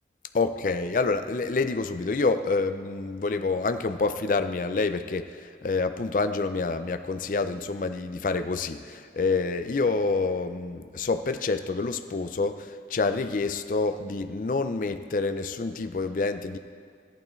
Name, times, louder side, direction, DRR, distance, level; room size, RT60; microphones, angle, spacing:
voice 1, 0.3-16.6, left 3 dB, 50° left, 9 dB, 0.4 m, -27 dB
14.0 x 11.0 x 3.1 m, 2.2 s
head